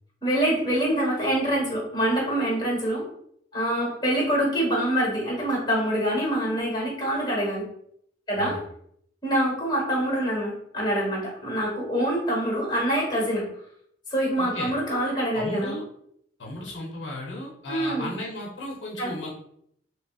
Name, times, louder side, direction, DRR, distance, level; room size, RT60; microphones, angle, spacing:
voice 1, 0.2-3.0 3.5-7.7 8.3-8.6 9.2-13.4 14.1-15.8 17.7-18.1 19.0-19.1, right 1 dB, 25° left, -3 dB, 1.4 m, -25 dB
voice 2, 14.4-14.7 15.3-15.8 16.4-19.3, left 1 dB, 80° left, -3 dB, 0.8 m, -35 dB
5.3 x 2.1 x 2.4 m, 0.69 s
head